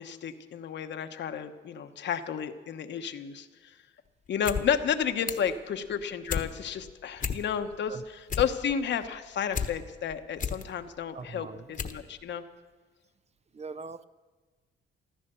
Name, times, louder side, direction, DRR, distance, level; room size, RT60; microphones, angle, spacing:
voice 1, 0.0-3.7 4.3-12.4, left 8 dB, 65° left, 8 dB, 1.1 m, -32 dB
sound 1, 4.3-4.6 4.9-5.5 5.9-6.5 6.9-7.0 7.2-7.8 8.1-9.7 10.1-10.6 11.2-11.3 11.7-12.0 12.3-12.4, left 6 dB, 40° left, 1.2 m, -32 dB
voice 2, 11.1-11.7 13.5-14.0, right 4 dB, 35° right, 14 dB, 0.6 m, -41 dB
15.0 x 13.5 x 6.8 m, 1.4 s
cardioid pair, 90°, 20 cm